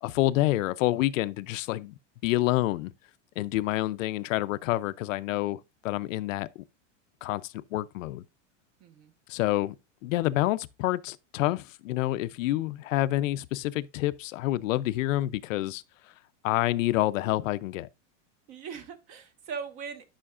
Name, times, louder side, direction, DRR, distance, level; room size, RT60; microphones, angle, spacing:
voice 1, 0.0-1.9 2.2-2.9 3.4-6.5 7.2-8.2 9.3-9.8 10.0-15.8 16.4-17.9, left 16 dB, 85° left, 0.6 m, -28 dB
voice 2, 8.8-9.1 18.5-20.1, right 6 dB, 40° right, 1.2 m, -40 dB
11.0 x 5.7 x 2.4 m
supercardioid pair, 160°, 38 cm